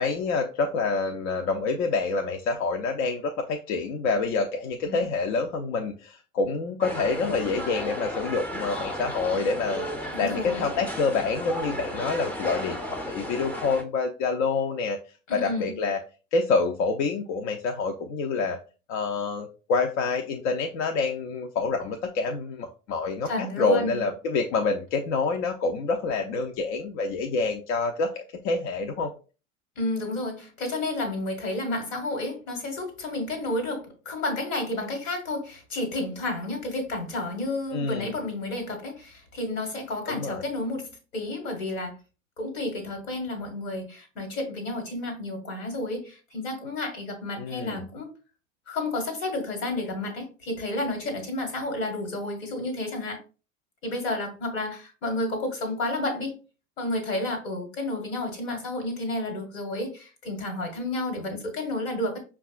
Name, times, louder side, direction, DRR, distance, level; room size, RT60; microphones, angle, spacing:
voice 1, 0.0-9.9 10.2-15.0 15.3-16.0 16.3-18.6 18.9-29.1 37.7-38.1 40.1-40.4 47.4-47.8, left 4 dB, 60° left, 0.6 m, -27 dB
sound 1, 6.8-13.8, equal, 5° left, 0.5 m, -34 dB
voice 2, 10.1-10.7 15.3-15.8 23.2-24.0 29.8-41.9 42.4-48.1 48.7-53.2 53.8-56.4 56.8-62.2, left 2 dB, 80° left, 1.3 m, -31 dB
5.3 x 2.3 x 2.4 m
hypercardioid pair, 80°, 39 cm